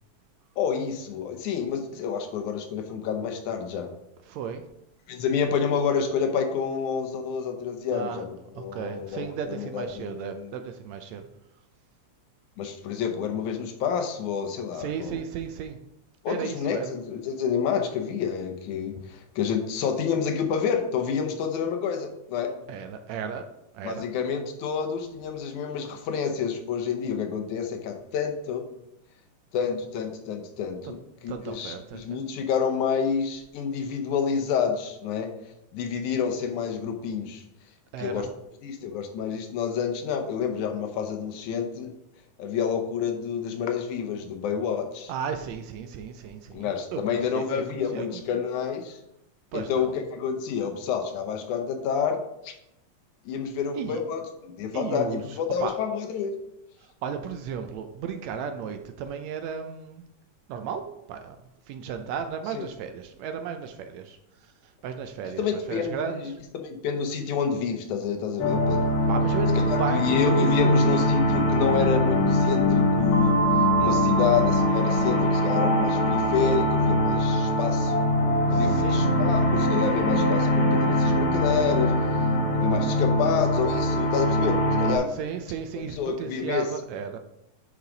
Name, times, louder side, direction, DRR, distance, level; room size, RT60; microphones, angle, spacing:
voice 1, 0.6-3.9 5.1-10.6 12.6-15.2 16.2-22.5 23.8-28.6 29.5-35.3 35.7-37.4 38.0-38.3 38.6-41.9 42.4-45.1 46.5-49.0 49.5-52.5 53.3-56.3 62.5-62.7 65.4-68.8 69.7-73.4 73.8-77.9 78.5-81.9 82.5-85.1 85.8-86.7, left 6 dB, 80° left, 5 dB, 2.3 m, -28 dB
voice 2, 4.3-4.6 7.9-8.2 8.6-11.2 14.7-15.8 16.3-16.9 22.7-23.5 23.7-24.1 30.9-31.0 31.3-32.2 37.9-38.3 45.1-48.2 49.5-50.0 53.8-54.0 54.7-55.2 55.6-55.7 57.0-60.1 60.5-61.4 61.7-64.2 64.4-66.4 69.1-71.0 78.5-79.1 85.1-87.2, right 7 dB, 75° right, 7 dB, 1.7 m, -34 dB
sound 1, 68.4-85.0, left 1 dB, 60° left, 2.0 m, -22 dB
9.4 x 4.8 x 3.9 m, 0.85 s
omnidirectional pair, 3.4 m